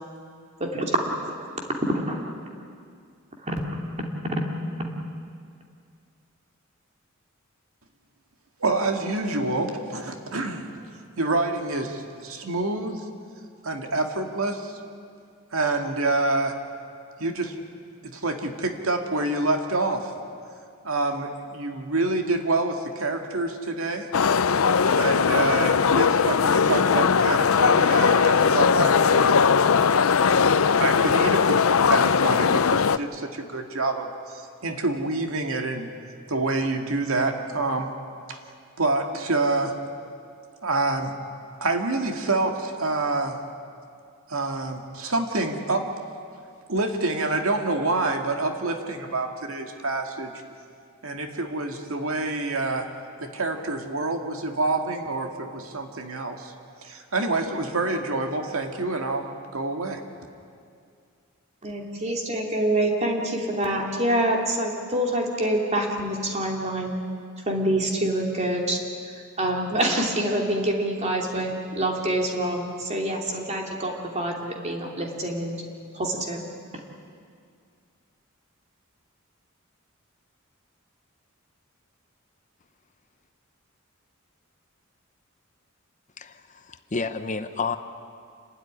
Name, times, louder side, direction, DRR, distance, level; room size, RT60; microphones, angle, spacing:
voice 1, 0.6-1.5 1.7-2.3 3.4-3.6 4.0-4.4 4.8-4.9 61.6-67.0 67.5-68.8 69.1-75.6 75.9-76.4, right 1 dB, 35° right, 0 dB, 2.9 m, -26 dB
voice 2, 8.6-10.7 11.2-13.0 13.6-14.7 15.5-16.5 17.2-17.5 18.0-20.1 20.8-24.1 24.9-29.4 30.2-34.1 34.3-35.9 36.3-37.9 38.3-38.4 38.8-39.7 40.6-41.1 41.6-43.4 44.3-45.8 46.7-50.3 51.0-52.9 53.2-56.5 56.8-59.2 59.5-60.0, right 2 dB, 85° right, 4 dB, 2.1 m, -27 dB
sound 1, 24.1-33.0, left 6 dB, 85° left, 0.6 m, -19 dB
voice 3, 86.2-87.8, left 4 dB, 35° left, 9 dB, 0.8 m, -30 dB
28.5 x 12.5 x 9.9 m, 2.3 s
head